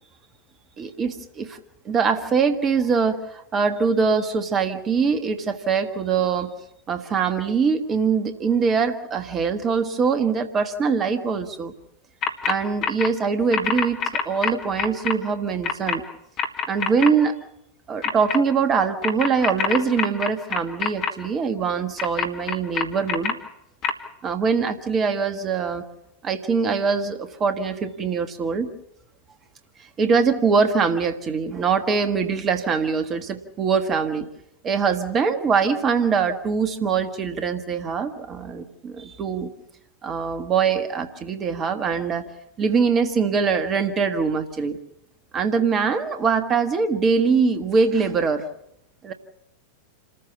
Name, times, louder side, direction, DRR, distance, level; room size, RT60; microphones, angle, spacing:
voice 1, 0.8-1.6 1.8-6.5 6.9-11.7 12.5-16.0 16.7-17.4 17.9-23.4 24.2-25.8 26.2-28.7 30.0-34.3 34.6-39.5 40.0-42.3 42.6-44.8 45.3-48.4 49.0-49.1, right 5 dB, 25° right, 8 dB, 1.6 m, -23 dB
sound 1, 12.2-12.5 12.8-13.1 13.5-15.1 15.6-16.0 16.4-17.1 18.0-18.4 19.0-21.1 22.0-23.3 23.8-23.9, left 7 dB, 35° left, 2.3 m, -24 dB
28.5 x 14.5 x 7.2 m, 0.80 s
figure-of-eight pair, 90°, 0 cm